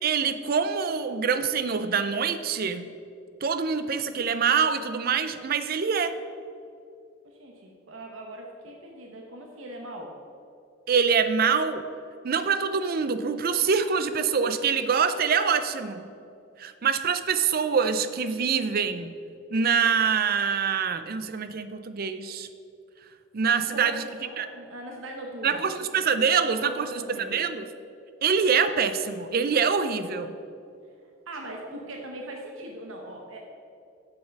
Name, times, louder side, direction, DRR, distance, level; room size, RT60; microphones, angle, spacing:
voice 1, 0.0-2.8 3.4-6.2 10.9-11.8 12.2-16.1 16.6-19.1 19.5-22.5 23.3-24.0 24.4-24.5 25.4-27.0 27.3-27.6 28.2-30.3, right 6 dB, 50° right, 11 dB, 0.5 m, -25 dB
voice 2, 7.2-10.1 23.4-25.6 26.6-27.4 31.0-33.4, right 1 dB, 80° right, 1 dB, 1.0 m, -40 dB
7.1 x 6.8 x 5.3 m, 2.5 s
head